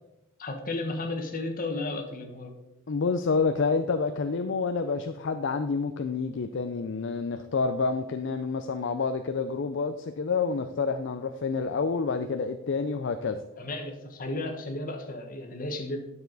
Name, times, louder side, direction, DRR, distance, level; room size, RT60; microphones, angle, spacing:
voice 1, 0.4-2.5 13.6-16.0, left 2 dB, 40° left, 3 dB, 1.3 m, -33 dB
voice 2, 2.9-13.4, left 4 dB, 55° left, 8 dB, 0.4 m, -28 dB
10.5 x 6.9 x 4.0 m, 0.94 s
head